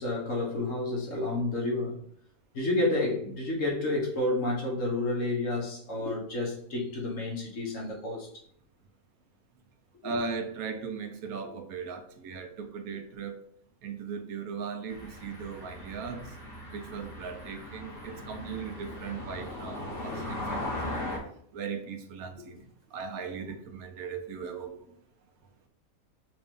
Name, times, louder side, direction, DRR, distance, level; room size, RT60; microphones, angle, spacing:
voice 1, 0.0-2.0 2.5-8.3, left 2 dB, 65° left, -2 dB, 1.6 m, -30 dB
voice 2, 10.0-13.4 13.8-16.3 16.7-21.1 21.5-24.9, right 5 dB, 85° right, 7 dB, 1.1 m, -38 dB
sound 1, 14.9-21.2, left 1 dB, 45° left, 1.4 m, -38 dB
5.8 x 2.6 x 3.6 m, 0.63 s
omnidirectional pair, 1.5 m